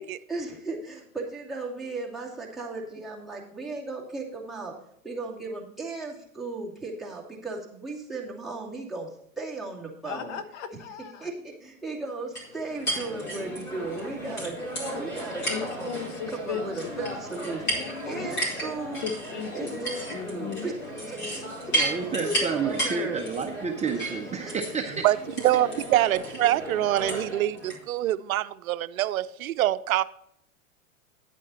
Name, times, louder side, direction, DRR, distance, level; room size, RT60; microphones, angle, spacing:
voice 1, 0.3-9.1 9.4-10.4 11.2-15.9 16.3-19.1 19.5-20.8 21.0-21.5 21.9-23.3 24.5-24.6 24.8-24.9, right 3 dB, ahead, -5 dB, 2.6 m, -36 dB
voice 2, 10.0-11.3 15.5-17.1 17.7-18.3 19.0-19.8 20.1-20.7, left 7 dB, 60° left, 10 dB, 1.2 m, -36 dB
sound 1, 12.3-27.8, right 1 dB, 25° left, 4.6 m, -33 dB
voice 3, 21.7-25.1, right 5 dB, 15° right, 2 dB, 0.8 m, -30 dB
voice 4, 25.4-30.0, right 13 dB, 90° right, 14 dB, 0.6 m, -25 dB
9.9 x 8.4 x 4.1 m, 0.68 s
hypercardioid pair, 120°, 41 cm